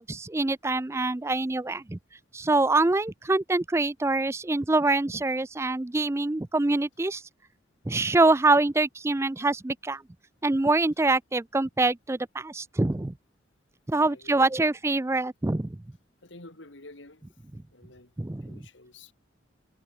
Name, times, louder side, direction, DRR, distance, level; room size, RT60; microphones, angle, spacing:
voice 1, 0.0-2.0 2.3-7.2 7.9-10.0 10.4-13.1 13.9-15.8 18.2-18.6, right 2 dB, 15° right, 0.4 m, -25 dB
voice 2, 13.9-14.6 16.2-17.2 17.7-18.1 18.4-19.1, left 2 dB, 75° left, 2.8 m, -49 dB
head